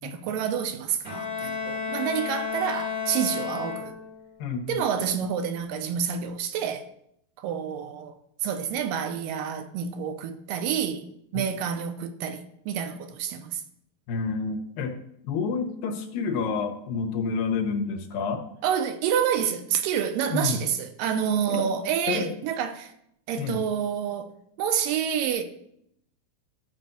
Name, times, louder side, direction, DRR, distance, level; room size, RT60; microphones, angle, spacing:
voice 1, 0.0-4.0 4.7-6.9 7.4-8.1 8.4-13.6 18.6-22.9 23.3-24.3 24.6-25.4, right 8 dB, 80° right, 2.4 m, -28 dB
Bowed string instrument, 1.0-4.3, left 6 dB, 25° left, 3.4 m, -32 dB
voice 2, 4.4-4.8 11.3-11.4 14.1-15.0 15.2-18.4 20.3-20.6 21.5-21.6 22.1-22.3 23.4-23.6, left 5 dB, 80° left, 2.8 m, -29 dB
12.5 x 4.4 x 6.7 m
omnidirectional pair, 4.1 m